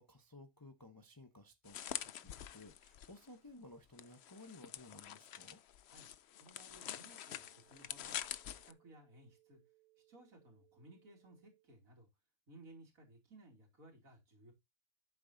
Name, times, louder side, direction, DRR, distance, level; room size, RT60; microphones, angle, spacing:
voice 1, 0.0-5.6, left 2 dB, 15° left, 0.9 m, -57 dB
sound 1, 1.6-3.3 4.0-8.7, left 10 dB, 60° left, 0.8 m, -46 dB
voice 2, 6.4-8.2 8.5-9.6 10.1-12.1 12.5-14.5, right 1 dB, 70° right, 3.2 m, -60 dB
sound 2, 6.7-11.7, right 18 dB, ahead, 4.6 m, -72 dB
10.5 x 8.8 x 2.7 m
omnidirectional pair, 1.5 m